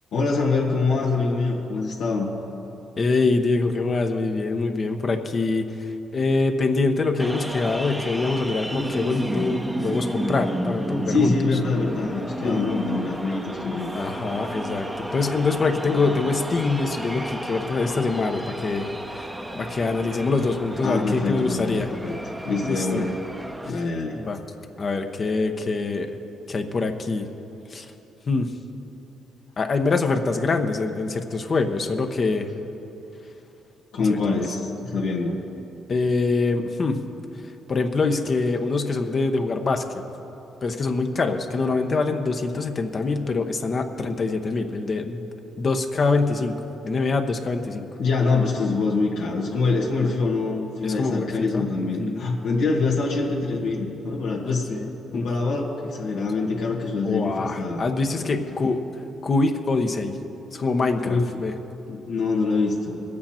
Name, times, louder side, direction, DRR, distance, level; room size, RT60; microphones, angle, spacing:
voice 1, 0.1-2.3 11.1-13.9 20.8-21.8 22.0-22.2 22.4-23.1 23.7-24.2 33.9-35.4 48.0-54.7 55.1-57.8 58.1-58.4 61.0-61.3 61.9-63.0, left 3 dB, 80° left, -4 dB, 1.7 m, -25 dB
voice 2, 3.0-11.3 12.4-12.6 13.9-18.9 19.1-21.9 22.6-23.0 23.7-23.8 24.1-24.4 24.8-26.1 26.5-27.3 27.7-27.9 28.3-28.5 29.6-32.5 34.1-34.5 35.9-37.0 37.7-39.8 40.6-45.2 45.6-46.5 46.9-47.9 50.8-52.3 54.7-55.3 56.9-58.8 59.2-60.2 60.5-61.5, left 3 dB, 40° left, 5 dB, 0.9 m, -24 dB
sound 1, 7.2-23.7, right 1 dB, 10° right, 0.8 m, -32 dB
21.0 x 8.5 x 4.4 m, 2.9 s
cardioid pair, 90°, 0 cm